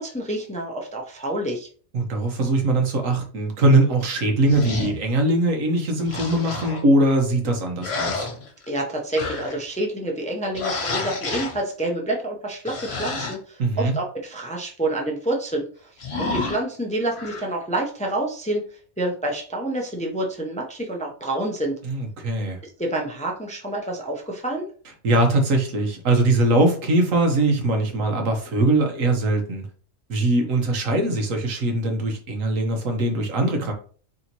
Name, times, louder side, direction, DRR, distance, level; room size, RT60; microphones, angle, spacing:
voice 1, 0.0-1.7 8.7-15.9 16.2-21.8 22.6-24.7, right 1 dB, 10° left, 0 dB, 0.5 m, -28 dB
voice 2, 1.9-8.3 13.6-13.9 21.8-22.6 25.0-29.7 30.1-33.7, right 2 dB, 90° right, 3 dB, 1.4 m, -21 dB
sound 1, 4.4-5.0 6.0-6.8 7.8-8.8 9.2-9.6 10.5-11.6 12.7-13.3 16.0-16.6 17.1-17.5, left 3 dB, 55° left, 1.3 m, -29 dB
4.0 x 3.4 x 2.9 m, 0.42 s
omnidirectional pair, 1.3 m